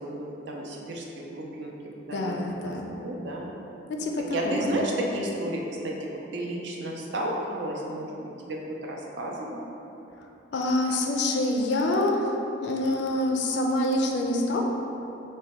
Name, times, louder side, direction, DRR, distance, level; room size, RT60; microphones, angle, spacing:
voice 1, 0.0-1.7 2.1-3.5 4.3-9.6, right 1 dB, 65° right, -1 dB, 0.4 m, -32 dB
voice 2, 2.1-2.9 3.9-4.8 10.5-12.3 12.6-14.6, left 1 dB, 60° left, 2 dB, 0.3 m, -26 dB
3.2 x 2.2 x 4.0 m, 3.0 s
head